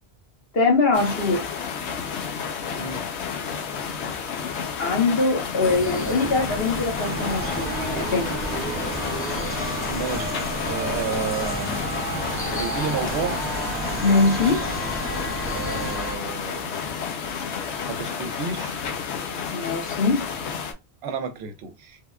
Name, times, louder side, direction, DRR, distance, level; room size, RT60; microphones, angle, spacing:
voice 1, 0.5-1.5 4.8-8.3 14.0-14.6 19.5-20.2, left 3 dB, 65° left, 1.3 m, -22 dB
sound 1, 0.9-20.7, left 6 dB, 90° left, 0.9 m, -31 dB
sound 2, 5.6-16.0, left 1 dB, 20° left, 0.4 m, -34 dB
sound 3, 7.0-16.2, right 2 dB, 45° right, 0.8 m, -32 dB
voice 2, 9.9-11.9 12.5-13.4 15.5-16.8 17.9-18.8 21.0-22.0, right 5 dB, 75° right, 0.9 m, -31 dB
3.4 x 2.2 x 2.2 m
omnidirectional pair, 1.1 m